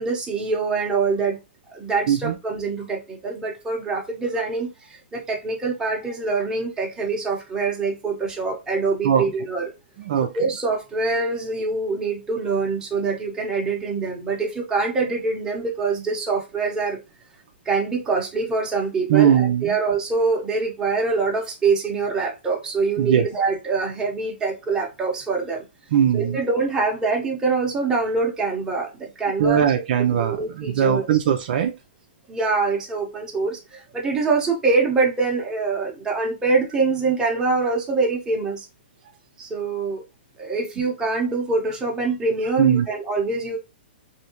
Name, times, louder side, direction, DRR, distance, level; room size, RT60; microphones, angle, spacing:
voice 1, 0.0-1.4 1.7-9.7 10.3-17.0 17.6-25.6 26.1-29.6 30.0-31.0 32.3-38.7 39.4-40.0 40.4-43.6, right 4 dB, 10° right, 1.0 m, -24 dB
voice 2, 10.0-10.3 19.1-19.8 23.0-23.3 25.9-26.4 29.4-31.7 42.6-42.9, right 9 dB, 50° right, 0.5 m, -20 dB
3.1 x 2.7 x 2.9 m
hypercardioid pair, 150°, 6 cm